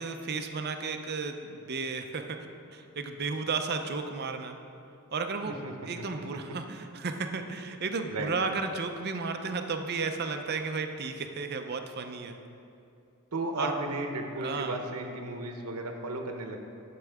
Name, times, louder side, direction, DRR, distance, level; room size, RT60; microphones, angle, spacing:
voice 1, 0.0-2.4 2.7-4.5 5.1-5.5 5.9-12.4 13.5-13.7 14.4-14.8, right 4 dB, 45° right, 6 dB, 0.6 m, -33 dB
voice 2, 5.5-6.0 8.1-8.6 13.3-16.6, right 2 dB, 85° right, 3 dB, 0.9 m, -35 dB
12.0 x 7.6 x 3.5 m, 2.7 s
head